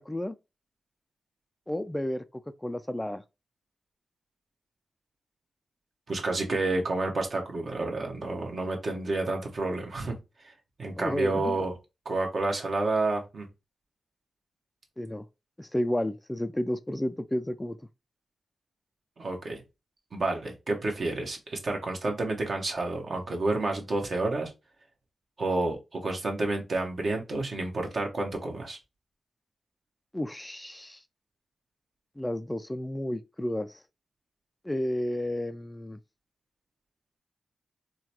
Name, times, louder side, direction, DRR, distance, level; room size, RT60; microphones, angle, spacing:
voice 1, 1.7-2.2 2.6-3.2 11.0-11.6 15.0-15.3 15.6-17.8 30.1-31.0 32.2-33.8 34.6-36.0, left 1 dB, 15° left, 0.3 m, -31 dB
voice 2, 6.1-10.1 10.8-11.7 12.0-13.5 19.2-19.6 20.1-24.5 25.4-28.8, right 2 dB, 60° right, 1.1 m, -29 dB
3.7 x 2.2 x 2.9 m
supercardioid pair, 40°, 0 cm